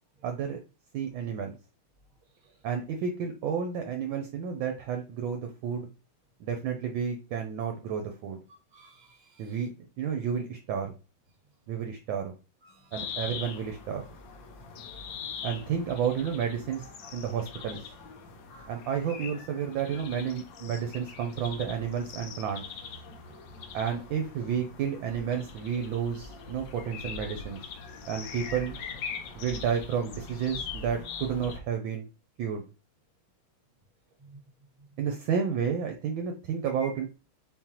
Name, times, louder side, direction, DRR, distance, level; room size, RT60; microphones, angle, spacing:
voice 1, 0.2-0.6 0.9-1.5 2.6-5.9 6.4-8.4 9.4-9.7 10.0-10.9 11.7-12.3 12.9-14.0 15.4-17.8 18.7-22.6 23.7-27.6 28.1-28.7 29.3-32.1 32.4-32.6 35.0-37.1, right 7 dB, 75° right, 1.3 m, -31 dB
voice 2, 2.2-2.7 8.5-9.7 12.6-13.0 23.1-23.7 34.2-34.4 34.8-35.0 36.8-36.9, right 1 dB, 30° right, 1.7 m, -55 dB
sound 1, 12.9-31.6, left 5 dB, 70° left, 1.3 m, -42 dB
4.6 x 3.8 x 2.8 m
omnidirectional pair, 2.4 m